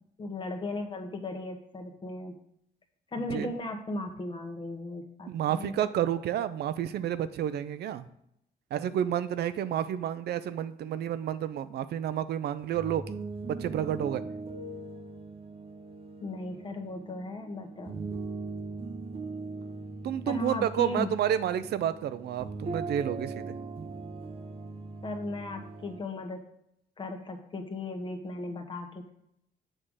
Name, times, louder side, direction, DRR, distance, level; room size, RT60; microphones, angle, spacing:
voice 1, 0.2-2.3 3.1-5.8 16.2-18.1 20.2-21.1 25.0-26.4 27.0-29.1, left 2 dB, 30° left, 3 dB, 1.2 m, -36 dB
voice 2, 5.3-8.0 8.7-13.0 13.4-14.2 20.0-23.5, right 10 dB, 80° right, 13 dB, 0.5 m, -30 dB
sound 1, 12.6-26.0, right 3 dB, 35° right, 0.7 m, -40 dB
7.7 x 3.7 x 6.3 m, 0.75 s
cardioid pair, 135°, 17 cm